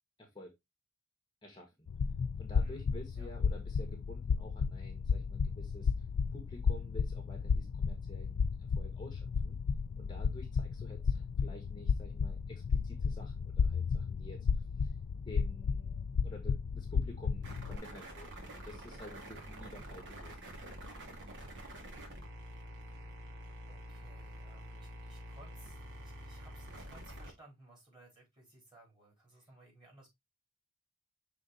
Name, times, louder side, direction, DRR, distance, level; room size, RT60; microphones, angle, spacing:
voice 1, 0.2-0.5 1.4-1.7 2.4-5.9 6.3-9.6 10.0-14.9 15.2-20.4, left 1 dB, 20° left, 1.2 m, -51 dB
sound 1, 1.9-17.8, left 5 dB, 60° left, 0.4 m, -33 dB
sound 2, 17.4-27.3, equal, 55° right, 2.1 m, -47 dB
voice 2, 23.7-30.1, right 2 dB, 20° right, 3.9 m, -60 dB
6.3 x 3.9 x 3.8 m
head